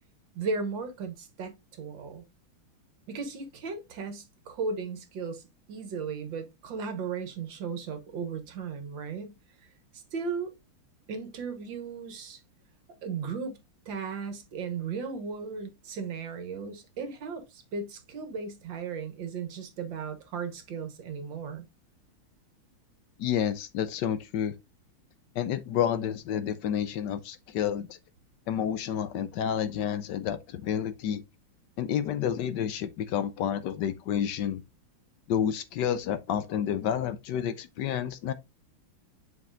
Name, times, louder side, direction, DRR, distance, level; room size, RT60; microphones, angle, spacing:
voice 1, 0.4-2.2 3.1-5.4 5.7-9.7 9.9-10.5 11.1-12.4 13.0-13.6 13.9-21.6, right 5 dB, 65° right, 1.8 m, -36 dB
voice 2, 23.2-24.5 25.3-28.0 28.5-31.2 31.8-34.6 35.3-38.3, left 9 dB, 70° left, 1.1 m, -30 dB
7.9 x 5.4 x 2.5 m
omnidirectional pair, 2.3 m